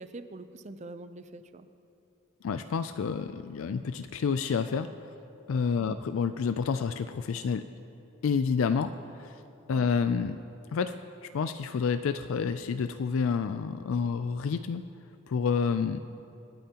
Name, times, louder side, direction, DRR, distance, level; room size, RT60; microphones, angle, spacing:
voice 1, 0.0-1.7 5.8-6.0 9.7-10.0, right 2 dB, 35° right, 10 dB, 0.5 m, -44 dB
voice 2, 2.4-4.9 5.5-7.6 8.2-9.4 9.7-10.4 10.7-10.9 11.3-14.8 15.3-16.0, left 6 dB, 80° left, 10 dB, 0.4 m, -29 dB
27.0 x 9.0 x 2.9 m, 2.8 s
head